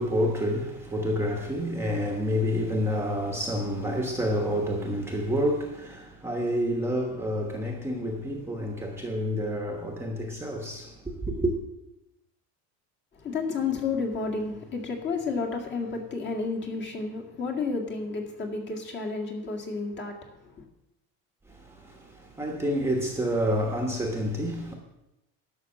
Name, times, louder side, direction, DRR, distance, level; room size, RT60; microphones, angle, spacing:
voice 1, 0.0-11.5 21.5-24.7, equal, 5° right, 1.1 m, -29 dB
voice 2, 13.2-20.2 20.4-20.6, left 4 dB, 35° left, 2.0 m, -31 dB
11.5 x 6.2 x 7.5 m
cardioid pair, 165°, 33 cm